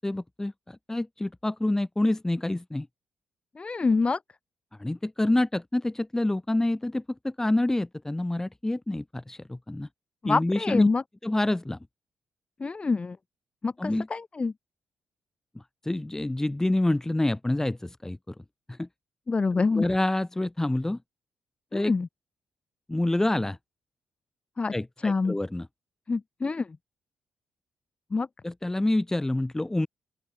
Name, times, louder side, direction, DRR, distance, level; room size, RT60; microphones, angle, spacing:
voice 1, 0.0-2.9 4.8-9.9 10.3-10.9 11.2-11.8 13.8-14.1 15.6-18.3 18.7-18.9 19.8-21.0 21.7-21.9 22.9-23.6 24.7-25.7 28.4-29.9, left 1 dB, 15° left, 1.7 m, -27 dB
voice 2, 3.6-4.2 10.2-11.0 12.6-13.2 13.6-14.5 19.3-19.9 21.7-22.1 24.6-24.7 25.0-25.4 26.1-26.8 28.1-28.3, left 4 dB, 35° left, 2.5 m, -26 dB
open air
supercardioid pair, 60°, 3 cm